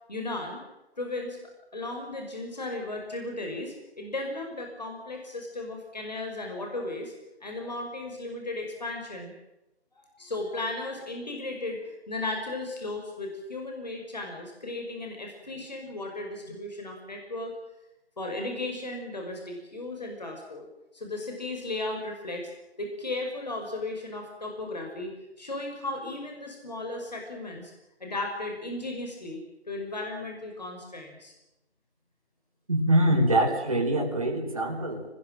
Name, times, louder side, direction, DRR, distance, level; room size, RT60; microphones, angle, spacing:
voice 1, 0.1-0.6 1.0-7.1 7.4-9.3 9.9-17.6 18.2-20.7 20.9-22.5 22.8-25.1 25.4-27.7 28.0-31.3, left 2 dB, 40° left, 2 dB, 5.7 m, -35 dB
voice 2, 32.7-35.0, right 1 dB, 30° right, 1 dB, 4.4 m, -24 dB
27.5 x 20.5 x 7.7 m, 0.94 s
figure-of-eight pair, 170°, 34 cm